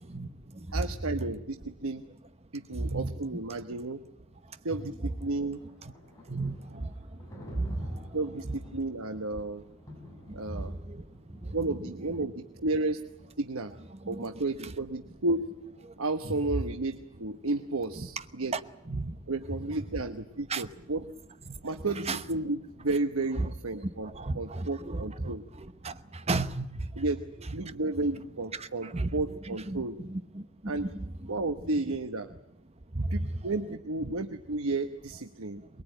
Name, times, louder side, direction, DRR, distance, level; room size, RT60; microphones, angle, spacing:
voice 1, 0.1-0.8 1.2-1.3 2.8-3.1 3.8-3.9 4.4-4.9 5.8-5.9 6.3-7.2 7.6-8.2 8.4-8.6 10.3-11.8 14.0-14.4 15.9-16.4 18.0-18.1 18.5-18.6 18.9-19.2 20.5-20.7 21.5-21.6 21.9-22.2 23.4-23.5 23.8-27.0 27.6-27.7 28.6-29.1 29.5-31.3 32.9-33.3 34.0-34.1 35.6-35.8, right 2 dB, 30° right, 1.0 m, -35 dB
voice 2, 0.7-2.0 2.5-4.0 4.6-5.6 8.1-9.6 10.3-10.7 11.5-13.0 13.4-13.7 14.1-15.4 16.0-18.5 19.3-21.1 21.6-25.4 27.0-27.2 27.5-30.0 30.7-30.9 31.3-32.3 33.1-35.6, right 2 dB, 75° right, 1.1 m, -32 dB
Thunder, 5.1-16.9, equal, 15° left, 7.3 m, -52 dB
23.0 x 21.5 x 9.1 m
head